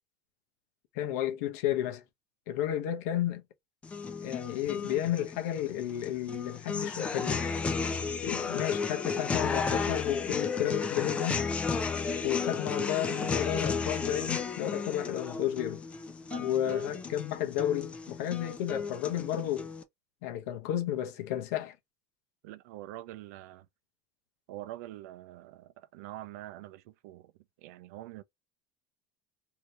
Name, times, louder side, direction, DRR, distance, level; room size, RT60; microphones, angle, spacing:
voice 1, 0.9-2.0 2.5-3.4 4.2-7.5 8.2-11.4 12.2-15.8 16.4-19.7 20.2-21.7, left 11 dB, 85° left, 0.8 m, -32 dB
sound 1, 3.8-19.8, left 5 dB, 15° left, 0.4 m, -33 dB
voice 2, 16.3-17.1 22.4-23.7 24.5-27.3 27.6-28.2, right 14 dB, 85° right, 0.5 m, -45 dB
2.8 x 2.8 x 3.1 m
cardioid pair, 165°, 8 cm